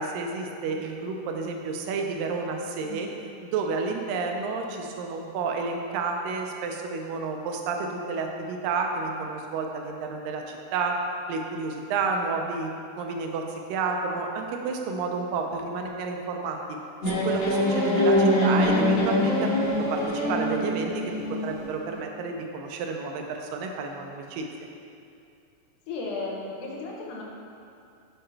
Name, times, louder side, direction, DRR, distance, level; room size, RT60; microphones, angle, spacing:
voice 1, 0.0-3.1 3.4-11.0 11.3-12.7 13.0-16.6 17.0-24.5, right 4 dB, 80° right, 2 dB, 2.2 m, -31 dB
sound 1, 17.0-21.7, left 1 dB, 55° left, 1.9 m, -24 dB
voice 2, 25.9-27.2, left 3 dB, 85° left, -2 dB, 2.7 m, -35 dB
7.7 x 5.4 x 3.3 m, 2.5 s
omnidirectional pair, 4.0 m